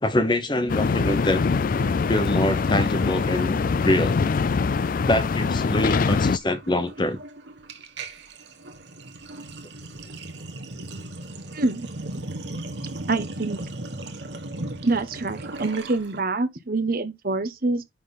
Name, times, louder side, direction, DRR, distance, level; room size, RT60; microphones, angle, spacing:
voice 1, 0.0-1.4 2.1-4.2 5.0-7.2, left 1 dB, 25° left, 1.0 m, -24 dB
sound 1, 0.7-6.4, left 4 dB, 45° left, 0.4 m, -23 dB
Sink (filling or washing), 1.7-4.0 4.2-4.5 4.8-16.2, right 2 dB, 65° right, 1.5 m, -38 dB
voice 2, 11.5-11.9 13.1-13.6 14.8-17.8, right 3 dB, 50° right, 1.1 m, -26 dB
10.0 x 3.8 x 4.1 m
head